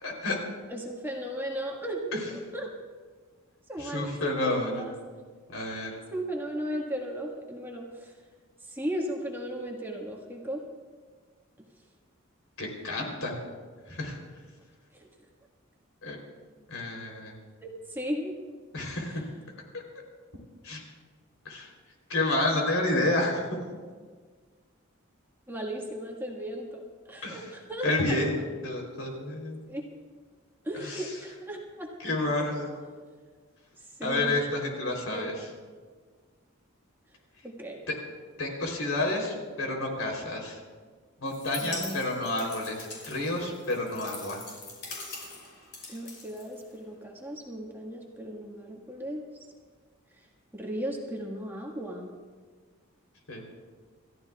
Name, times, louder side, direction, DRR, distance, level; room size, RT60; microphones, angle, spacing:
voice 1, 0.0-0.4 3.8-4.8 5.5-5.9 12.6-13.3 13.9-14.2 16.0-16.2 16.7-17.4 18.7-19.2 20.6-20.8 21.4-21.7 22.1-23.6 27.2-27.4 27.8-28.3 28.6-29.6 30.8-31.1 32.0-32.8 34.0-35.3 37.9-38.0 38.4-40.6 41.2-44.4 53.3-53.4, left 2 dB, 70° left, 0 dB, 3.5 m, -30 dB
voice 2, 0.7-2.2 2.5-2.7 3.7-4.9 6.1-8.1 8.6-10.6 14.9-15.1 17.6-18.4 19.1-19.3 25.5-28.2 29.7-29.9 30.6-31.9 34.0-34.3 35.1-35.4 37.4-37.8 41.6-42.0 45.9-49.2 50.2-50.3 50.5-52.1, equal, 10° right, -1 dB, 1.7 m, -36 dB
sound 1, 41.3-47.0, left 3 dB, 50° left, 5.6 m, -42 dB
28.5 x 14.5 x 2.4 m, 1.5 s
head